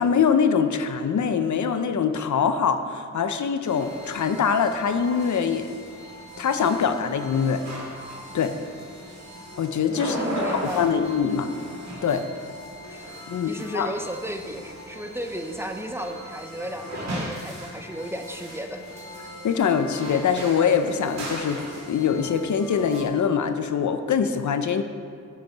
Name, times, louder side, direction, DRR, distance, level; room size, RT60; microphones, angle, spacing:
voice 1, 0.0-5.7 6.4-7.6 8.3-8.6 9.6-10.2 10.5-11.5 12.0-12.3 13.3-13.9 19.4-21.6 21.9-24.8, left 6 dB, 75° left, 9 dB, 0.7 m, -23 dB
sound 1, 3.6-23.0, equal, 65° right, 2.2 m, -37 dB
voice 2, 10.1-10.9 12.9-13.1 13.5-18.8, equal, 10° right, 5 dB, 0.6 m, -34 dB
11.5 x 6.8 x 5.5 m, 2.4 s
wide cardioid pair, 135°, 30 cm